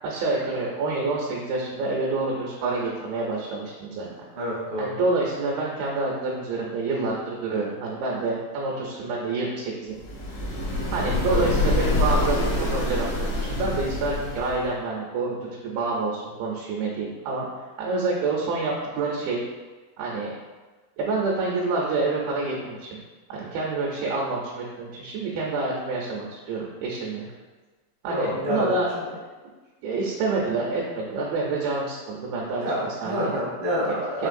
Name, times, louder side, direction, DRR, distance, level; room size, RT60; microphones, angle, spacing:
voice 1, 0.0-4.1 4.8-10.0 10.9-13.1 13.4-17.5 17.8-19.4 20.0-20.3 21.0-23.0 23.3-27.3 28.0-29.3 29.8-32.6 33.0-33.3 34.2-34.3, right 3 dB, 85° right, -3 dB, 2.4 m, -27 dB
voice 2, 4.3-4.9 11.3-11.4 28.1-29.0 32.6-34.3, equal, 70° right, -7 dB, 1.2 m, -28 dB
sound 1, 10.0-14.7, left 2 dB, 75° left, 1.3 m, -26 dB
5.7 x 3.1 x 2.5 m, 1.3 s
omnidirectional pair, 4.0 m